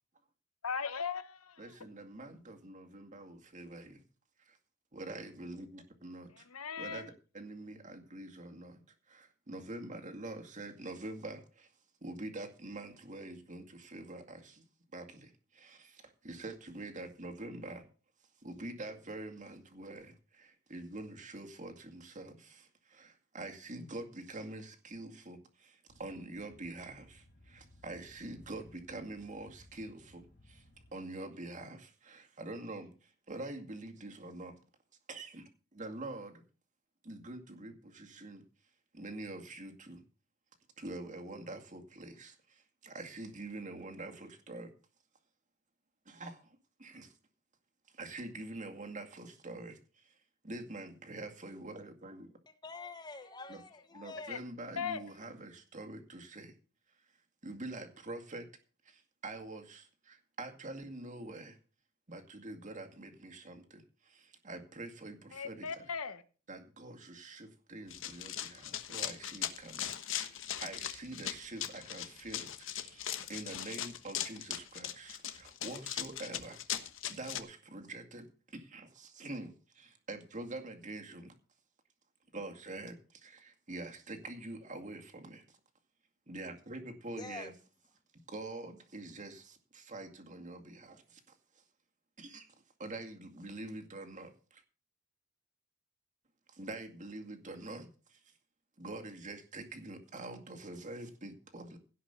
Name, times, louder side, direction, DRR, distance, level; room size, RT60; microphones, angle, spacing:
voice 1, 0.6-1.8 6.3-7.1 54.3-54.4 54.8-55.0 65.3-66.2, left 6 dB, 90° left, 1.3 m, -38 dB
voice 2, 1.6-4.0 4.4-4.6 4.9-6.5 6.8-8.8 9.1-11.7 12.0-14.7 14.9-17.8 18.4-30.6 30.9-34.6 35.1-35.4 35.7-36.4 37.0-38.4 38.9-40.0 40.8-44.7 46.1-47.1 47.9-50.2 50.4-52.3 53.5-53.6 53.9-56.5 57.4-58.5 58.8-61.6 62.1-65.7 66.5-70.3 70.6-76.6 77.1-81.3 82.3-85.6 86.3-87.5 88.1-91.6 92.2-94.6 96.5-98.2 98.8-101.8, right 2 dB, 35° right, 2.2 m, -46 dB
sound 1, 25.9-30.9, left 1 dB, 45° left, 3.8 m, -61 dB
voice 3, 52.5-54.4 54.9-55.0 87.2-87.5, left 3 dB, 20° left, 1.2 m, -46 dB
Run, 67.9-77.4, left 10 dB, 60° left, 1.3 m, -39 dB
17.0 x 5.8 x 6.8 m
head